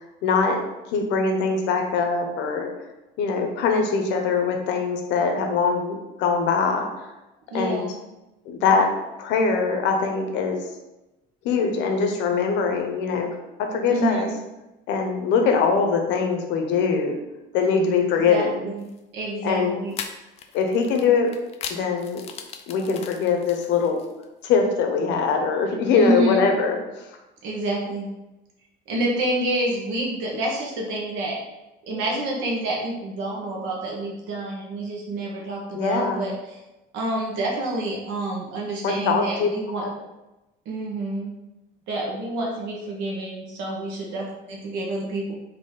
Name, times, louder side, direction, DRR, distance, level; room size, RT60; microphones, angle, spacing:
voice 1, 0.2-2.7 3.2-7.1 7.5-7.9 8.4-10.7 11.4-13.3 13.6-14.3 14.9-17.2 17.5-18.6 19.4-19.9 20.5-21.3 21.7-22.2 22.7-24.0 24.4-27.1 35.7-36.3 38.8-39.5 39.7-39.9, left 5 dB, 65° left, 4 dB, 0.8 m, -22 dB
voice 2, 7.5-8.0 13.9-14.3 18.2-18.9 19.1-20.0 25.9-26.4 27.4-28.1 28.9-31.4 31.8-36.6 36.9-39.9 40.6-41.3 41.9-45.3, right 1 dB, 70° right, -1 dB, 1.3 m, -28 dB
sound 1, 18.8-19.0 19.9-24.3, left 7 dB, 30° left, 0.4 m, -38 dB
4.2 x 2.9 x 3.8 m, 0.99 s
cardioid pair, 155°, 20 cm